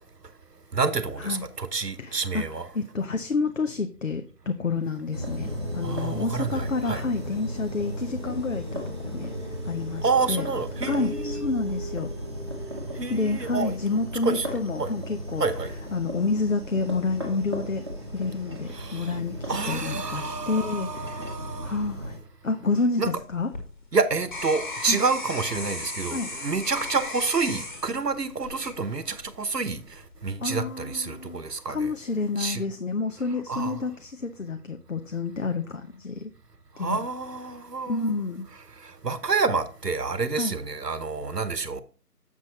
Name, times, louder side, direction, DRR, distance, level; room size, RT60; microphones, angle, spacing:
voice 1, 0.7-2.7 5.8-7.0 10.0-11.4 13.0-13.7 14.2-14.5 14.8-14.9 15.4-15.7 18.7-19.1 19.5-21.8 23.0-23.1 23.9-31.9 32.4-32.6 33.5-33.8 36.8-38.1 38.8-41.8, right 4 dB, 80° right, 1.2 m, -28 dB
voice 2, 2.0-5.5 5.7-9.3 9.6-10.4 10.8-12.1 13.1-15.4 15.9-17.8 18.1-19.4 19.7-21.4 21.6-22.2 22.4-23.5 24.9-25.0 26.1-26.3 30.4-31.4 31.7-36.3 36.8-37.0 37.9-38.5 40.4-40.5, left 3 dB, 55° left, 0.7 m, -29 dB
sound 1, 5.1-22.2, equal, 15° right, 1.0 m, -35 dB
sound 2, 23.2-29.4 29.9-30.4, left 2 dB, 30° left, 1.6 m, -36 dB
7.4 x 6.2 x 4.0 m
figure-of-eight pair, 160°, 48 cm